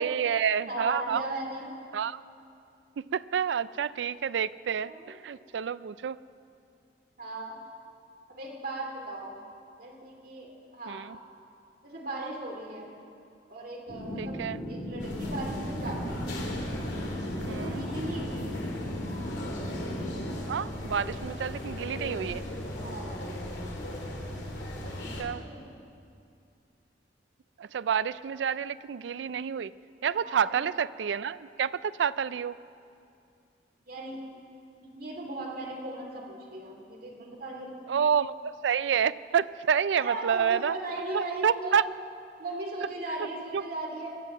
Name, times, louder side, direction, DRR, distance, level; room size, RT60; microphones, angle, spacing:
voice 1, 0.0-1.2 1.9-2.2 3.0-6.2 10.9-11.2 14.2-14.6 17.5-17.9 20.5-22.4 25.2-25.4 27.6-29.7 30.0-32.6 37.9-40.8 41.1-41.8 43.5-43.6, right 7 dB, 80° right, 17 dB, 0.4 m, -29 dB
voice 2, 0.7-1.7 4.8-5.2 7.2-7.6 8.3-9.3 9.8-11.0 11.8-13.0 13.5-14.4 14.7-16.3 17.4-18.7 20.9-21.0 22.8-23.2 25.4-25.7 30.2-30.6 33.9-34.2 34.8-37.9 40.0-41.8 42.4-44.2, right 2 dB, 55° right, 0 dB, 2.6 m, -37 dB
sound 1, 13.9-20.3, equal, 50° left, 3.2 m, -37 dB
sound 2, 15.0-25.2, left 1 dB, 75° left, 2.5 m, -37 dB
23.0 x 7.8 x 7.3 m, 2.5 s
head